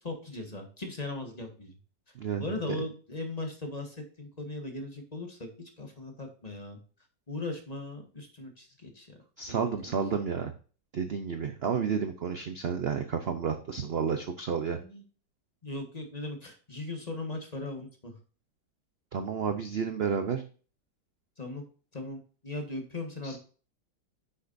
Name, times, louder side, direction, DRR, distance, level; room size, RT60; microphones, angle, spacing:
voice 1, 0.0-1.8 2.4-5.5 5.8-6.8 7.3-9.1 9.5-9.6 9.8-9.9 14.7-15.0 15.6-18.1 21.4-21.6 21.9-23.4, left 2 dB, 25° left, 3 dB, 1.4 m, -38 dB
voice 2, 9.4-10.5 10.9-14.8 19.1-20.4 23.2-23.4, right 6 dB, 55° right, 7 dB, 0.7 m, -31 dB
9.7 x 6.4 x 2.6 m, 0.38 s
omnidirectional pair, 1.8 m